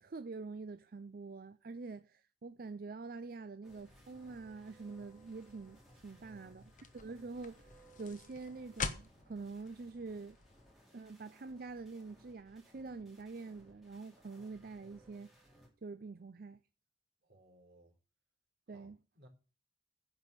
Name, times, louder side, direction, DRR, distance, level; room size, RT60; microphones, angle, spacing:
voice 1, 0.0-10.4 10.9-15.3 15.8-16.6 18.7-19.0, right 4 dB, 55° right, 0.5 m, -46 dB
sound 1, 3.6-15.7, right 1 dB, ahead, 3.4 m, -63 dB
sound 2, 3.7-10.7, left 5 dB, 50° left, 1.0 m, -48 dB
voice 2, 17.2-17.9 18.7-19.3, right 1 dB, 75° right, 3.9 m, -63 dB
10.5 x 5.5 x 8.0 m
head